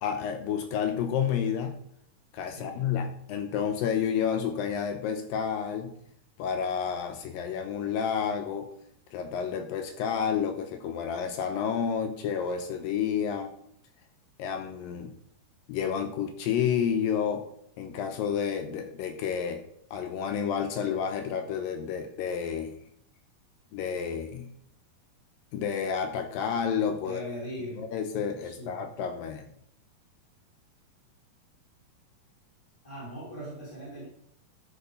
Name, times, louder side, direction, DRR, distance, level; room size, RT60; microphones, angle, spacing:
voice 1, 0.0-1.8 2.3-5.9 6.4-8.7 9.1-13.5 14.4-15.2 15.7-17.4 17.8-19.6 19.9-22.7 23.7-24.5 25.5-27.2 27.8-29.5, left 7 dB, 80° left, 6 dB, 2.3 m, -30 dB
voice 2, 2.5-2.9 27.0-27.9 28.4-28.9 32.8-34.1, equal, 5° left, -7 dB, 2.9 m, -40 dB
13.0 x 4.5 x 5.3 m, 0.70 s
omnidirectional pair, 4.4 m